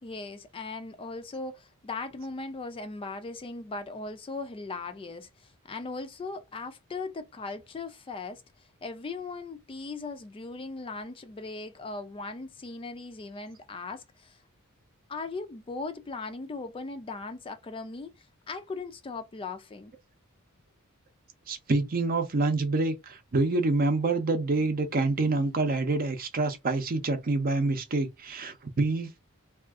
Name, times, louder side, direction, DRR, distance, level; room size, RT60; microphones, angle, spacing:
voice 1, 0.0-14.4 15.1-19.9, left 3 dB, 25° left, 0.3 m, -38 dB
voice 2, 21.5-29.3, right 3 dB, 40° right, 0.6 m, -27 dB
2.4 x 2.3 x 3.5 m
head